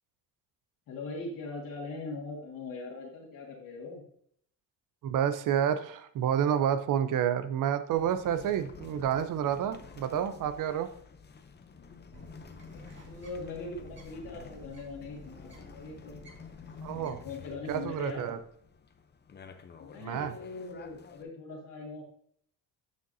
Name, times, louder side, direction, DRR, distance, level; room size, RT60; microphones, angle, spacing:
voice 1, 0.9-4.0 11.8-16.3 16.9-18.4 19.8-22.0, left 3 dB, 65° left, -2 dB, 2.2 m, -41 dB
voice 2, 5.0-10.9 16.8-17.2 17.7-18.4 20.0-20.3, right 9 dB, 60° right, 11 dB, 0.8 m, -29 dB
sound 1, 7.9-21.2, left 5 dB, 30° left, 0.7 m, -50 dB
Bird, 12.1-18.1, right 1 dB, 30° right, 2.1 m, -53 dB
9.5 x 6.5 x 2.7 m, 0.66 s
cardioid pair, 100°, 36 cm